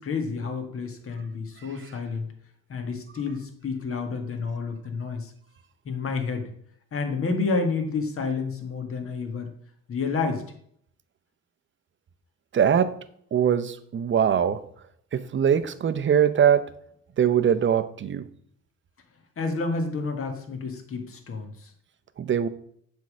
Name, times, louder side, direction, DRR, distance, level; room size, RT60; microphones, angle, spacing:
voice 1, 0.0-2.3 2.7-5.3 5.8-6.5 6.9-9.5 9.9-10.4 19.4-21.7, left 4 dB, 45° left, 4 dB, 1.7 m, -29 dB
voice 2, 12.5-13.0 13.3-14.6 15.1-16.7 17.2-18.3 22.2-22.5, right 8 dB, 40° right, 12 dB, 0.7 m, -22 dB
7.6 x 3.7 x 6.3 m, 0.66 s
cardioid pair, 90°, 30 cm